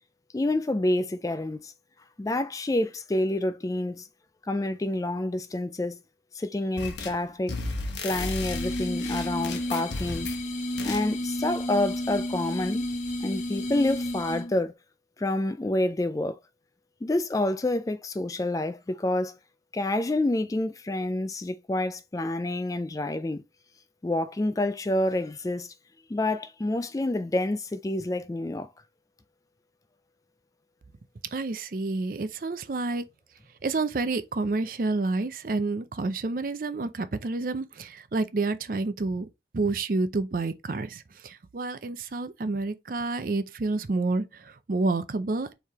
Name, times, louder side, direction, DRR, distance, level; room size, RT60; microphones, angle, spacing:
voice 1, 0.3-1.7 2.2-4.1 4.5-6.0 6.3-7.5 8.0-10.3 10.8-12.9 13.2-14.7 15.2-16.4 17.0-19.4 19.7-23.4 24.0-25.7 26.1-28.7, left 1 dB, 20° left, 0.3 m, -28 dB
sound 1, 6.8-7.2 7.5-10.4 10.8-11.1, left 3 dB, 80° left, 1.0 m, -34 dB
sound 2, 8.1-14.6, left 1 dB, 40° left, 0.7 m, -32 dB
voice 2, 31.3-33.0 33.6-39.3 39.5-45.5, right 3 dB, 50° right, 0.5 m, -29 dB
4.6 x 3.3 x 3.5 m
head